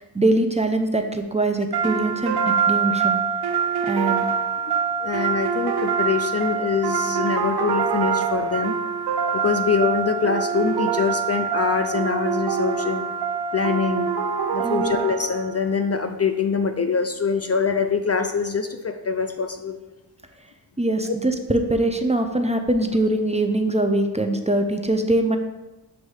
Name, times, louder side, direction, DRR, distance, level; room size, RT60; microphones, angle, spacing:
voice 1, 0.0-3.2 3.9-4.3 14.6-14.9 20.8-25.4, right 1 dB, 15° right, 5 dB, 0.6 m, -22 dB
sound 1, 1.7-15.6, right 6 dB, 70° right, 0.6 m, -24 dB
voice 2, 4.7-8.7 9.3-13.1 13.5-14.1 14.5-19.8, left 5 dB, 40° left, 7 dB, 0.4 m, -24 dB
7.9 x 2.7 x 4.8 m, 1.1 s
cardioid pair, 55°, 41 cm